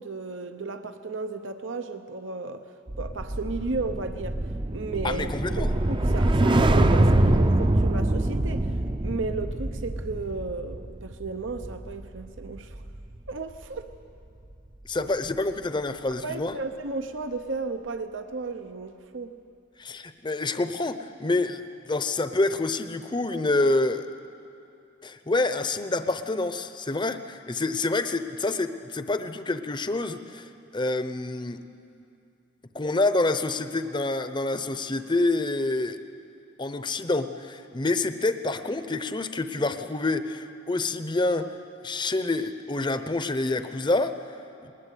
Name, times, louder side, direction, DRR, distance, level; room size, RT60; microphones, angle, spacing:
voice 1, 0.0-2.7 3.0-4.4 4.7-5.3 5.6-8.7 9.0-12.8 13.3-13.9 15.0-15.1 16.2-19.4, right 3 dB, 80° right, 8 dB, 0.8 m, -34 dB
sound 1, 2.9-13.3 13.6-13.9, right 1 dB, 25° right, 0.6 m, -24 dB
voice 2, 5.0-5.7 14.9-16.6 19.8-24.1 25.0-31.6 32.7-36.0 36.6-41.5 41.8-44.2, left 2 dB, 25° left, 10 dB, 0.7 m, -27 dB
20.5 x 20.0 x 8.4 m, 2.6 s
head